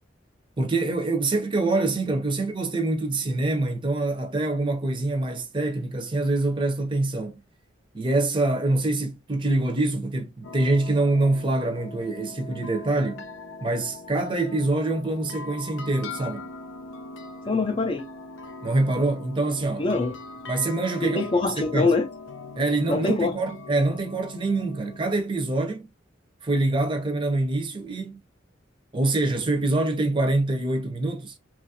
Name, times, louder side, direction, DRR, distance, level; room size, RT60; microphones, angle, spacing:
voice 1, 0.6-7.4 7.9-13.3 13.6-16.5 18.6-19.9 20.5-21.2 21.7-21.9 22.6-25.9 26.4-28.2 28.9-31.3, right 2 dB, 25° right, 0.6 m, -25 dB
sound 1, 10.4-25.0, left 3 dB, 85° left, 0.5 m, -41 dB
voice 2, 17.5-18.1 19.8-20.2 21.0-22.1 22.9-23.4, left 3 dB, 30° left, 0.4 m, -24 dB
3.0 x 2.4 x 2.7 m
head